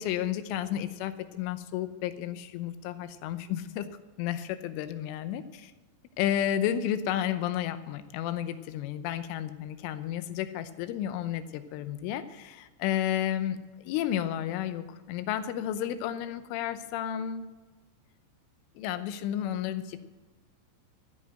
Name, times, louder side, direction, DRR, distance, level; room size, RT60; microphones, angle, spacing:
voice 1, 0.0-3.9 4.2-5.4 6.2-17.5 18.8-20.0, left 11 dB, 85° left, 11 dB, 3.3 m, -32 dB
13.0 x 8.2 x 7.6 m, 1.2 s
omnidirectional pair, 5.6 m